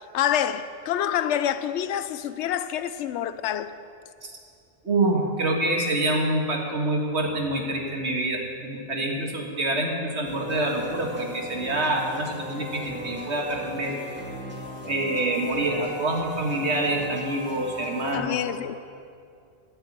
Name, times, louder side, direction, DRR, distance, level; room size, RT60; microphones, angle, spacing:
voice 1, 0.0-3.7 18.1-18.8, left 10 dB, 80° left, 0.9 m, -27 dB
voice 2, 4.8-14.0 14.9-18.4, right 2 dB, 70° right, 2.0 m, -26 dB
sound 1, 10.2-18.2, equal, 10° right, 2.5 m, -37 dB
13.5 x 6.7 x 9.5 m
omnidirectional pair, 1.2 m